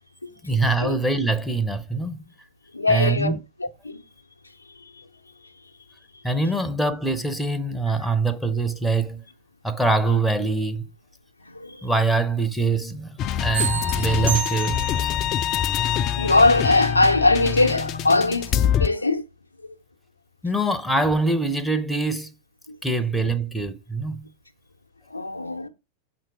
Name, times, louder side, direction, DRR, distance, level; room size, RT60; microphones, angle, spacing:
voice 1, 0.4-2.2 2.9-3.4 6.2-9.2 9.6-10.9 11.8-15.1 20.4-22.3 22.8-24.2, right 3 dB, 5° left, 0.7 m, -24 dB
voice 2, 2.7-3.3 3.6-4.0 4.8-5.0 5.4-5.5 11.4-11.9 16.2-19.2 19.6-19.7 22.7-22.8 25.1-25.7, left 2 dB, 85° left, 0.6 m, -21 dB
sound 1, 13.2-18.9, left 9 dB, 35° left, 0.4 m, -25 dB
sound 2, 13.5-15.2, right 8 dB, 65° right, 1.7 m, -30 dB
6.4 x 4.5 x 4.7 m
figure-of-eight pair, 90°, 0 cm